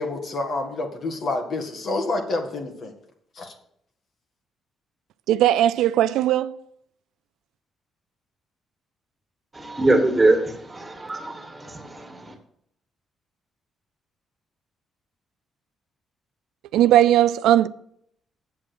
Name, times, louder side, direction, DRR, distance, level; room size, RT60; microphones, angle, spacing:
voice 1, 0.0-2.9 3.4-3.5, left 2 dB, 55° left, 2.0 m, -28 dB
voice 2, 5.3-6.5 16.7-17.7, right 12 dB, 90° right, 0.3 m, -18 dB
voice 3, 9.5-12.3, right 2 dB, 20° right, 2.3 m, -23 dB
7.7 x 7.6 x 6.1 m
cardioid pair, 90°, 0 cm